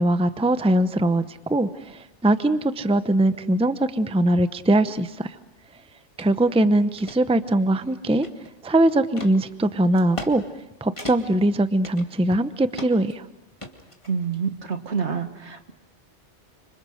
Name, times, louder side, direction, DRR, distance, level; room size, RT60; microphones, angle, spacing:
voice 1, 0.0-5.4 6.2-8.3 8.6-10.4 10.8-13.3, right 1 dB, 5° right, 12 dB, 0.7 m, -21 dB
sound 1, 6.2-6.3 6.8-7.2 7.7-8.7 9.2-9.3 9.9-10.3 10.6-10.7 11.0-11.4 11.8-12.4 12.7-13.1 13.6-14.4, left 2 dB, 25° left, 2.3 m, -38 dB
voice 2, 14.1-15.7, right 6 dB, 75° right, 7 dB, 2.0 m, -27 dB
29.5 x 26.0 x 6.5 m, 0.94 s
omnidirectional pair, 1.2 m